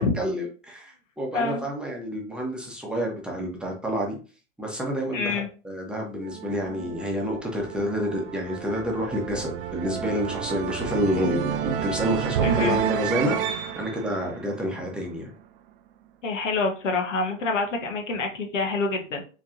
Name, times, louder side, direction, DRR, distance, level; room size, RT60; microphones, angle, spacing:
voice 1, 0.0-4.2 4.6-15.2, equal, ahead, -2 dB, 1.0 m, -29 dB
voice 2, 1.3-1.7 5.1-5.5 12.4-12.8 16.2-19.2, left 3 dB, 70° left, 3 dB, 1.1 m, -27 dB
sound 1, 6.2-15.2, right 9 dB, 45° right, 0.5 m, -30 dB
4.4 x 3.1 x 2.6 m, 0.37 s
figure-of-eight pair, 100°, 39 cm